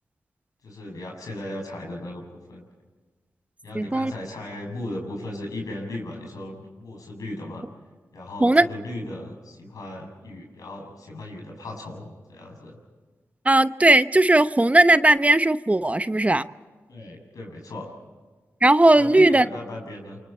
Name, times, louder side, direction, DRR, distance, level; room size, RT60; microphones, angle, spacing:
voice 1, 0.6-2.6 3.6-7.7 8.1-12.8 16.9-17.9 18.9-20.2, left 1 dB, 85° left, 0 dB, 7.3 m, -36 dB
voice 2, 3.7-4.1 8.4-8.6 13.4-16.5 18.6-19.5, right 2 dB, 25° right, 12 dB, 0.8 m, -17 dB
29.0 x 24.5 x 4.5 m, 1.4 s
cardioid pair, 50°, 6 cm